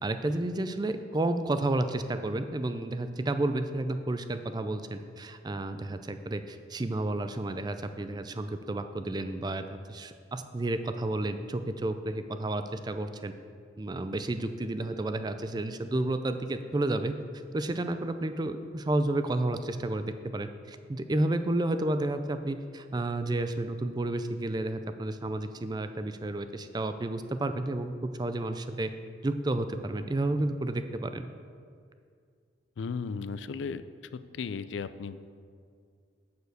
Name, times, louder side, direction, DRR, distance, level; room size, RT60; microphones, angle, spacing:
voice 1, 0.0-13.3 13.8-17.1 17.5-28.9 29.2-31.2, right 2 dB, 20° right, 9 dB, 0.4 m, -31 dB
voice 2, 32.8-33.8 34.3-35.2, left 5 dB, 75° left, 13 dB, 0.4 m, -35 dB
7.0 x 6.6 x 6.6 m, 2.2 s
head